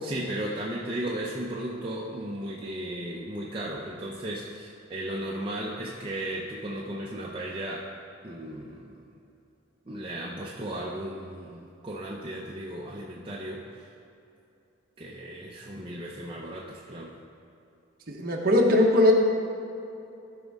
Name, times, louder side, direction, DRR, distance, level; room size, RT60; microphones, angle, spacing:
voice 1, 0.0-7.9 8.2-9.1 9.9-13.9 15.0-17.1, right 1 dB, 25° right, -4 dB, 0.6 m, -35 dB
voice 2, 18.1-19.1, left 1 dB, 45° right, 0 dB, 1.0 m, -20 dB
13.5 x 5.3 x 3.5 m, 2.7 s
head